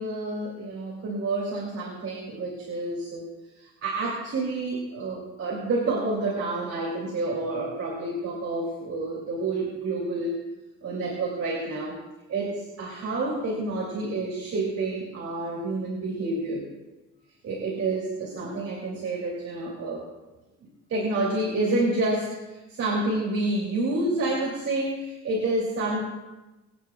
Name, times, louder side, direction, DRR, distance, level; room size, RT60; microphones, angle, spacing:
voice 1, 0.0-3.3 3.8-10.3 10.8-12.0 12.3-16.6 17.4-20.0 20.9-22.4 22.7-26.0, right 2 dB, 55° right, -4 dB, 2.9 m, -28 dB
24.0 x 9.3 x 2.4 m, 1.1 s
cardioid pair, 90°, 30 cm